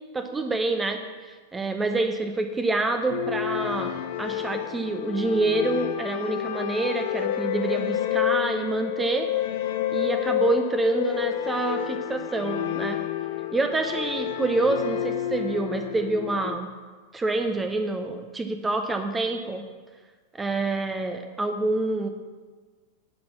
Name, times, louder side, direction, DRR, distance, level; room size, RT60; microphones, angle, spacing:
voice 1, 0.1-9.3 9.9-13.0 13.5-16.7 17.1-19.6 20.4-22.1, right 3 dB, 15° right, 6 dB, 0.8 m, -27 dB
sound 1, 3.1-16.6, left 12 dB, 55° left, 0.7 m, -29 dB
11.0 x 6.0 x 7.3 m, 1.4 s
figure-of-eight pair, 90°, 0 cm